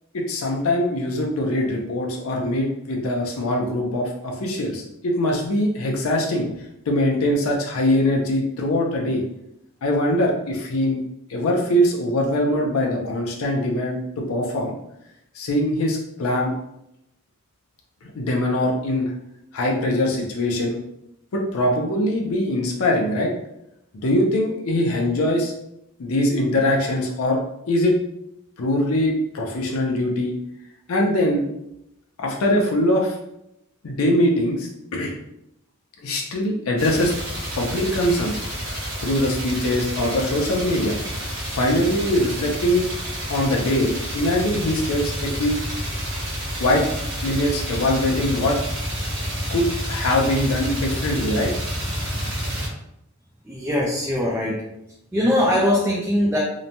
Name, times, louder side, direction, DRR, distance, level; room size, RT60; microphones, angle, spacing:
voice 1, 0.1-6.5 6.9-9.2 9.8-11.0 11.3-14.7 15.3-16.5 18.0-19.1 19.5-20.8 21.3-23.3 24.0-25.5 26.0-27.4 27.7-28.0 28.6-30.3 30.9-31.5 32.2-33.2 33.8-35.1 36.0-37.1 37.6-38.4 39.0-41.0 41.5-42.9 43.3-45.6 46.6-46.8 47.2-48.6 49.5-51.5, left 1 dB, 85° left, 0 dB, 0.5 m, -22 dB
sound 1, 36.8-52.7, equal, 60° right, 1.1 m, -29 dB
voice 2, 53.4-54.7 55.1-56.4, left 1 dB, 10° right, -4 dB, 0.3 m, -21 dB
2.9 x 2.1 x 2.6 m, 0.82 s
head